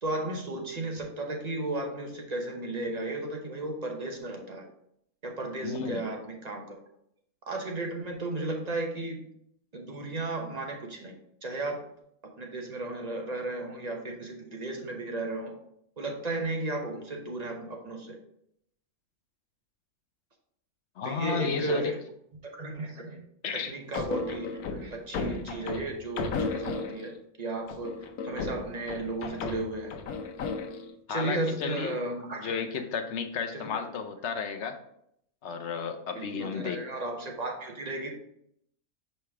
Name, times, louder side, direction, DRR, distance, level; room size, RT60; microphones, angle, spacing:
voice 1, 0.0-4.6 5.2-6.8 7.5-9.3 9.7-11.2 11.4-11.9 12.4-15.6 16.0-18.2 21.0-22.0 22.5-23.2 23.5-30.0 31.1-32.6 33.5-33.9 36.1-38.1, right 2 dB, 35° right, 1 dB, 0.9 m, -34 dB
voice 2, 5.6-6.0 21.0-21.9 23.4-23.7 31.1-32.0 32.4-34.8 35.4-36.8, left 6 dB, 60° left, 5 dB, 0.9 m, -33 dB
sound 1, 23.9-27.2 27.7-30.9, left 4 dB, 90° left, 1.2 m, -35 dB
5.6 x 5.0 x 3.4 m, 0.73 s
omnidirectional pair, 1.5 m